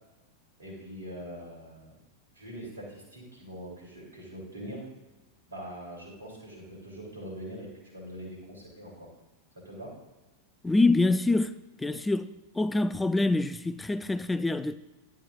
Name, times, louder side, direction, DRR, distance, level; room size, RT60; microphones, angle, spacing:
voice 1, 0.6-2.0 2.3-4.8 5.5-9.1 9.6-9.9, equal, 75° right, 3.3 m, -43 dB
voice 2, 10.6-11.5 11.8-12.3 12.6-14.8, left 2 dB, 10° left, 0.3 m, -25 dB
11.0 x 9.2 x 2.5 m
figure-of-eight pair, 90°, 0 cm